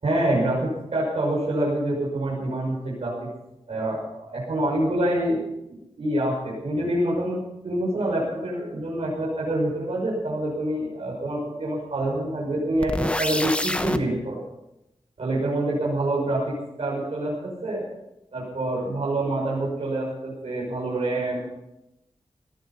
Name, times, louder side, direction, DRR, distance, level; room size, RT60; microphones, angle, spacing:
voice 1, 0.0-3.1 3.7-5.4 5.7-7.4 7.6-14.4 15.2-17.3 17.6-17.8 18.3-21.6, right 1 dB, 65° right, -5 dB, 6.3 m, -26 dB
sound 1, 12.8-14.0, left 1 dB, 10° left, 1.0 m, -26 dB
18.0 x 13.5 x 5.8 m, 0.87 s
wide cardioid pair, 125°, 11 cm